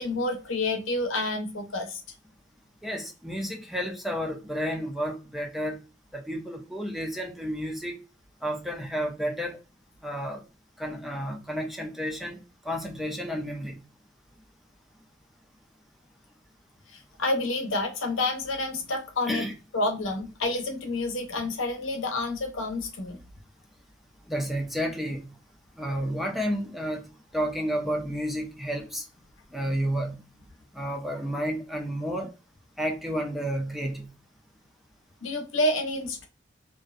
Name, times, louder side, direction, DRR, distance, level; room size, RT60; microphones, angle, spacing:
voice 1, 0.0-2.0 16.9-19.5 19.7-23.2 35.2-36.3, left 2 dB, 85° left, 0.7 m, -29 dB
voice 2, 2.8-5.8 6.1-7.9 8.4-9.6 10.0-10.4 10.8-12.4 12.7-13.8 19.3-19.5 24.3-25.3 25.8-27.0 27.3-29.0 29.5-30.2 30.7-32.3 32.8-34.1, equal, ahead, 0.4 m, -31 dB
2.5 x 2.1 x 2.3 m
head